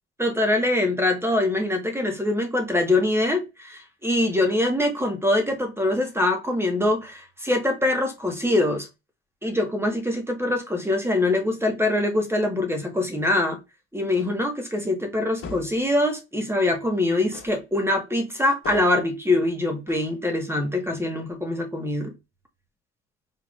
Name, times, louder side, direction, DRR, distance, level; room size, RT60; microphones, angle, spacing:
voice 1, 0.2-8.9 9.4-13.6 13.9-22.1, left 1 dB, 5° right, 1.5 m, -24 dB
sound 1, 14.1-14.5 15.4-15.9 17.3-17.7 18.6-19.1 19.9-20.2, left 5 dB, 40° left, 1.7 m, -40 dB
4.7 x 3.7 x 2.5 m
hypercardioid pair, 55°, 35 cm